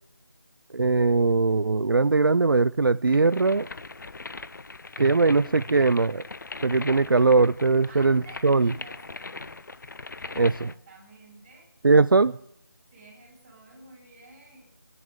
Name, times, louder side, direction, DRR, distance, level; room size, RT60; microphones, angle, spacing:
voice 1, 0.7-3.7 5.0-6.3 6.6-8.7 10.4-10.7 11.8-12.4, right 3 dB, 75° right, 15 dB, 0.5 m, -20 dB
sound 1, 3.1-10.8, left 3 dB, 60° left, 0.6 m, -40 dB
voice 2, 7.9-9.6 10.2-11.7 12.9-14.7, right 2 dB, 20° right, -6 dB, 7.7 m, -51 dB
23.5 x 11.0 x 3.6 m, 0.72 s
figure-of-eight pair, 165°, 12 cm